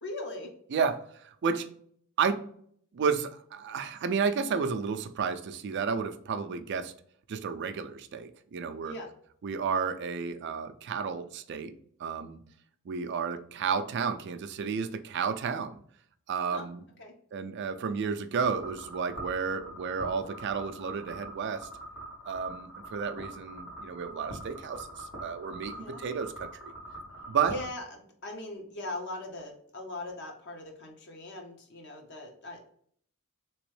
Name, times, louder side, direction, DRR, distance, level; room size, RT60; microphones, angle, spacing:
voice 1, 0.0-0.5 8.8-9.1 16.5-16.7 17.0-17.1 25.7-26.0 27.4-32.6, left 2 dB, 55° left, 0.8 m, -40 dB
voice 2, 0.7-1.7 2.2-2.4 2.9-6.9 7.3-8.9 9.4-11.7 12.0-12.4 12.9-15.8 16.3-16.8 17.3-21.7 22.3-26.7 27.3-27.5, right 6 dB, 55° right, 0.4 m, -32 dB
sound 1, 18.3-27.7, right 1 dB, 70° left, 1.4 m, -44 dB
3.4 x 3.0 x 3.2 m
head